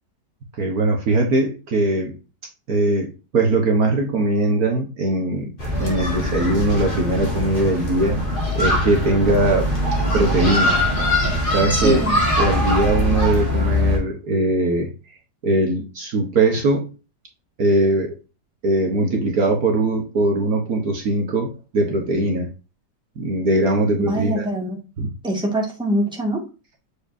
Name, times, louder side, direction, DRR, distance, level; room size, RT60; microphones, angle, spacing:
voice 1, 0.5-2.2 2.7-8.2 8.5-9.7 10.1-10.8 11.4-12.0 12.4-15.2 15.4-16.9 17.6-18.2 18.6-22.5 23.2-24.4 25.0-25.1, right 2 dB, 55° right, 2 dB, 1.5 m, -21 dB
sound 1, 5.6-14.0, left 1 dB, 30° left, 2.3 m, -21 dB
voice 2, 11.7-12.2 24.1-24.8 25.2-26.4, right 1 dB, 5° right, -1 dB, 1.8 m, -23 dB
7.0 x 5.1 x 2.6 m, 0.31 s
omnidirectional pair, 1.9 m